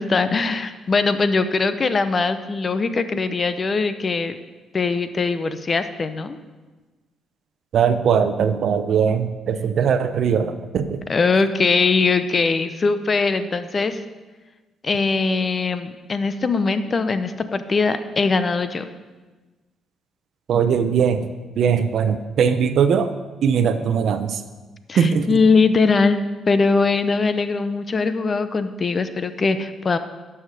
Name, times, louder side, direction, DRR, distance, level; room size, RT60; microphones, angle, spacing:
voice 1, 0.0-4.4 4.7-6.4 11.1-14.0 14.8-18.9 24.9-30.0, left 4 dB, 40° left, 11 dB, 0.7 m, -21 dB
voice 2, 7.7-11.0 20.5-21.3 21.6-23.1 23.4-24.4 25.0-25.4, right 7 dB, 65° right, 10 dB, 0.7 m, -20 dB
12.0 x 5.8 x 4.9 m, 1.2 s
supercardioid pair, 65°, 0 cm